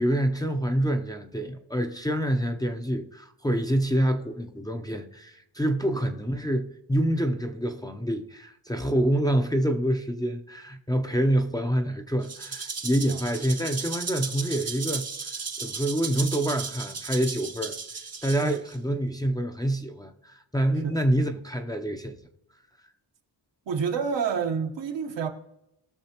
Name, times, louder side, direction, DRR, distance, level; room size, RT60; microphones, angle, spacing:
voice 1, 0.0-17.8 18.2-22.2, right 1 dB, 10° left, 0.6 m, -27 dB
Rattle (instrument), 12.2-18.7, right 4 dB, 35° right, 0.9 m, -35 dB
voice 2, 23.7-25.3, right 6 dB, 75° right, 1.2 m, -28 dB
19.5 x 6.6 x 2.9 m
wide cardioid pair, 125°, 44 cm